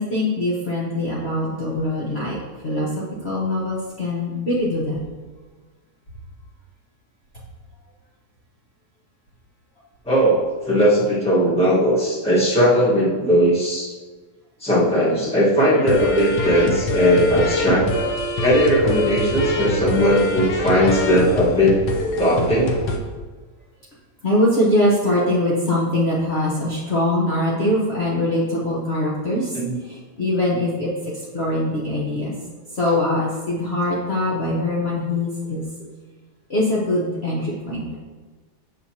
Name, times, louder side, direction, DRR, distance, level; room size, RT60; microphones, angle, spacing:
voice 1, 0.0-2.4 2.6-2.9 3.2-5.0 24.2-29.5 29.9-30.9 31.3-32.3 32.8-35.6 36.5-37.9, left 1 dB, 45° left, -6 dB, 1.1 m, -22 dB
voice 2, 10.0-13.9 14.6-17.9 18.4-21.8 22.2-22.8 29.5-29.8, equal, 5° left, -5 dB, 1.2 m, -18 dB
sound 1, 15.6-23.0, left 1 dB, 70° left, 1.3 m, -24 dB
7.8 x 6.6 x 2.8 m, 1.3 s
omnidirectional pair, 1.9 m